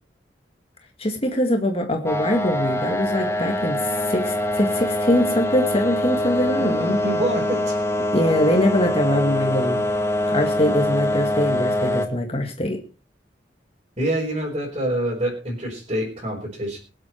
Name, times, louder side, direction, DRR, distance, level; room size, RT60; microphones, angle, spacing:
voice 1, 1.0-7.0 8.1-9.8 10.3-12.8, left 1 dB, 35° left, 3 dB, 1.9 m, -22 dB
sound 1, 2.1-12.1, left 1 dB, 15° left, 1.6 m, -24 dB
voice 2, 6.6-7.7 14.0-16.8, right 1 dB, 35° right, -5 dB, 4.7 m, -26 dB
23.0 x 8.0 x 4.5 m, 0.35 s
head